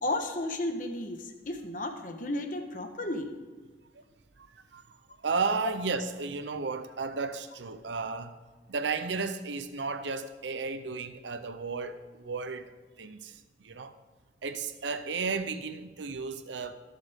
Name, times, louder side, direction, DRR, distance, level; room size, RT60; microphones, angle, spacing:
voice 1, 0.0-3.3, left 1 dB, 45° left, 1.2 m, -33 dB
voice 2, 4.4-4.8 5.2-8.4 8.7-13.9 14.4-16.7, right 4 dB, 80° right, 0.7 m, -34 dB
22.5 x 7.5 x 3.6 m
head